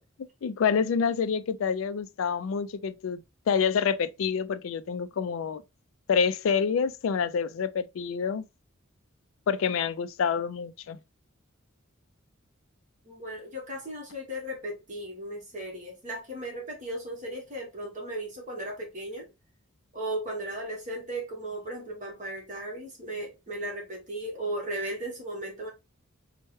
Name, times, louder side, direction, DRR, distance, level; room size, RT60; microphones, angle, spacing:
voice 1, 0.4-3.2 3.5-5.6 6.1-8.5 9.5-11.0, left 6 dB, 80° left, 0.4 m, -27 dB
voice 2, 13.0-19.3 19.9-25.7, right 1 dB, 40° right, 1.3 m, -36 dB
4.4 x 2.2 x 3.0 m
head